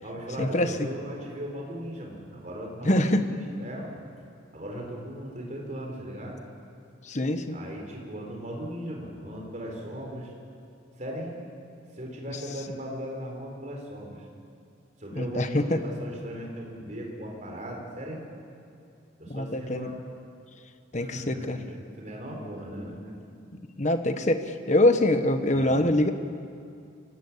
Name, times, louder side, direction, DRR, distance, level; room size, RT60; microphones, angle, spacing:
voice 1, 0.0-3.0 3.3-3.9 4.5-6.4 7.5-10.3 11.0-11.3 11.9-14.2 15.0-18.2 19.2-20.0 21.0-23.1 25.5-25.8, equal, 40° right, 0 dB, 4.2 m, -38 dB
voice 2, 2.8-3.2 7.1-7.6 15.2-15.8 19.3-19.9 20.9-21.6 23.8-26.1, left 1 dB, 35° left, 8 dB, 1.2 m, -24 dB
25.0 x 18.0 x 8.6 m, 2.4 s
head